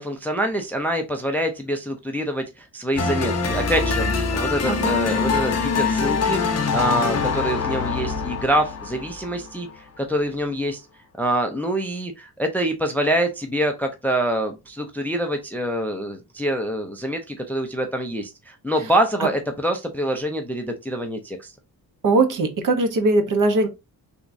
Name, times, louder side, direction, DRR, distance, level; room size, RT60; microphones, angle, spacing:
voice 1, 0.0-4.1 4.3-9.7 10.0-10.8 11.2-21.5, right 1 dB, 5° left, 0.4 m, -25 dB
sound 1, 3.0-9.8, left 5 dB, 45° left, 0.7 m, -24 dB
voice 2, 4.7-5.0 19.2-19.3 22.0-23.7, right 2 dB, 55° right, 0.9 m, -20 dB
3.4 x 3.0 x 2.5 m
wide cardioid pair, 140°, 37 cm